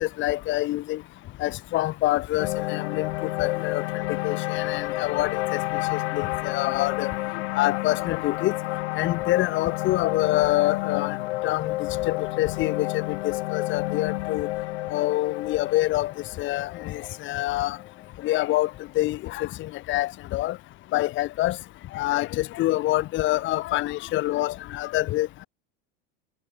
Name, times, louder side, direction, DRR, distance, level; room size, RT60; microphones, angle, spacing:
voice 1, 0.0-1.0 1.4-3.8 4.2-5.4 6.1-7.1 7.6-8.5 9.0-11.2 11.4-11.8 12.1-14.5 14.9-16.1 16.4-17.8 18.2-18.7 19.0-20.6 20.9-21.6 21.9-25.5, left 17 dB, 40° left, 1.0 m, -26 dB
sound 1, 2.4-18.6, left 18 dB, 85° left, 2.6 m, -30 dB
supercardioid pair, 135°, 32 cm